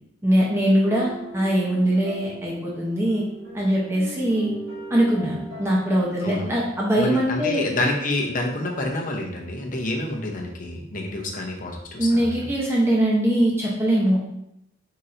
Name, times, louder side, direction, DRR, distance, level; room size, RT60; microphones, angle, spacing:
voice 1, 0.2-3.2 3.5-4.5 4.9-7.7 12.0-14.2, right 1 dB, 10° right, -4 dB, 0.7 m, -22 dB
sound 1, 0.7-6.0, right 1 dB, 75° right, 1.6 m, -40 dB
voice 2, 6.9-12.3, left 2 dB, 40° left, 0 dB, 0.7 m, -28 dB
3.9 x 2.6 x 4.3 m, 0.80 s
head